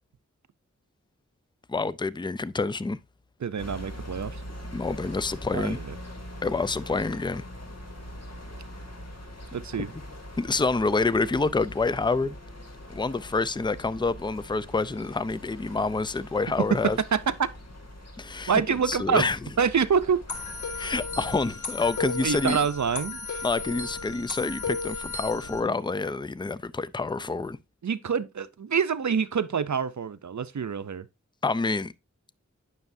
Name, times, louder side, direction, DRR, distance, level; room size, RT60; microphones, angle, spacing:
voice 1, 1.7-3.0 4.7-5.8 6.4-7.4 10.4-12.4 12.9-17.0 18.2-19.4 20.7-22.6 23.4-27.6 31.4-31.9, left 3 dB, 15° left, 0.4 m, -27 dB
voice 2, 3.4-4.4 5.5-6.0 9.5-9.9 17.1-17.2 18.5-19.3 19.6-20.5 22.2-23.4 27.8-31.1, right 6 dB, 65° right, 0.6 m, -26 dB
sound 1, 3.6-21.5, equal, 55° left, 2.3 m, -42 dB
sound 2, 20.3-25.6, left 3 dB, 70° left, 1.3 m, -34 dB
9.3 x 6.3 x 2.6 m
wide cardioid pair, 45°, 31 cm